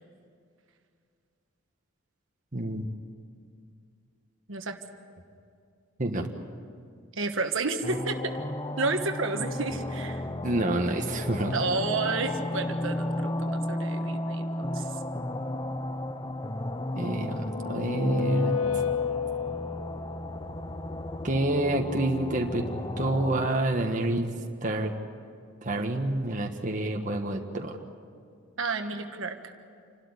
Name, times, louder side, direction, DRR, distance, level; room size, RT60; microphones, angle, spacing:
voice 1, 2.5-2.9 6.0-6.3 10.4-11.5 16.9-18.6 21.2-22.6 23.0-24.3 24.6-24.9 25.6-27.8, right 1 dB, 35° right, 2 dB, 1.4 m, -28 dB
voice 2, 7.1-8.2 8.8-10.3 11.5-14.9 28.6-29.4, right 3 dB, 65° right, 5 dB, 1.5 m, -31 dB
sound 1, 7.8-23.5, left 1 dB, 20° left, 0.7 m, -34 dB
sound 2, 17.0-20.0, left 7 dB, 80° left, 0.5 m, -31 dB
28.5 x 12.5 x 9.7 m, 2.3 s
head